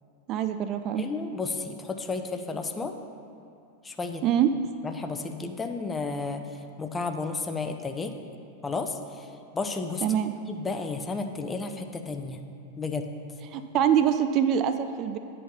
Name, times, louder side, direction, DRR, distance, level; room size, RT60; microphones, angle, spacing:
voice 1, 0.3-1.0 4.2-4.5 10.0-10.3 13.5-15.2, right 9 dB, 35° right, 9 dB, 0.3 m, -24 dB
voice 2, 1.0-2.9 3.8-4.2 4.8-6.4 6.8-8.1 8.6-9.3 9.5-10.2 10.4-12.4 12.8-13.1, left 4 dB, 15° left, 6 dB, 0.6 m, -32 dB
8.8 x 4.9 x 5.6 m, 2.7 s
figure-of-eight pair, 90°, 0 cm